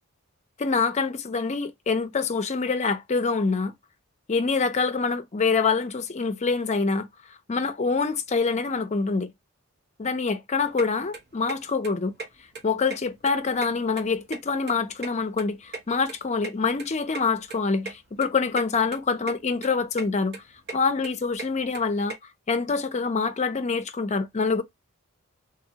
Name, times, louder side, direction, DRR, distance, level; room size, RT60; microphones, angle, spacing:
voice 1, 0.6-3.7 4.3-7.1 7.5-9.3 10.0-12.1 12.6-20.4 20.7-22.2 22.5-24.6, left 4 dB, 30° left, 0.5 m, -25 dB
sound 1, 10.8-10.9 11.1-11.6 11.8-11.9 12.2-12.3 12.5-13.3 13.6-14.8 15.0-16.5 16.8-16.9 17.1-17.2 17.5-17.6 17.9-18.0 18.2-18.7 18.9-19.3 19.6-20.1 20.3-22.1, right 3 dB, 50° right, 0.9 m, -36 dB
3.3 x 2.3 x 2.8 m
head